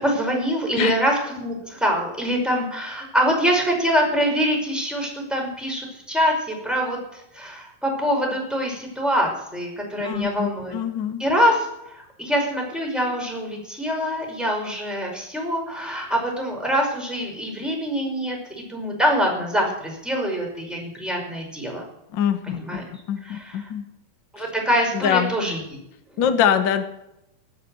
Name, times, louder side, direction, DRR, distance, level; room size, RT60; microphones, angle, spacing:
voice 1, 0.0-10.7 11.2-21.8 22.5-22.8 23.2-23.7 24.3-25.6, equal, ahead, 0 dB, 5.1 m, -24 dB
voice 2, 10.0-11.3 22.1-22.8 23.1-23.9 24.9-25.4 26.2-26.8, left 8 dB, 90° left, 8 dB, 1.0 m, -23 dB
20.0 x 8.5 x 7.9 m, 0.84 s
omnidirectional pair, 4.3 m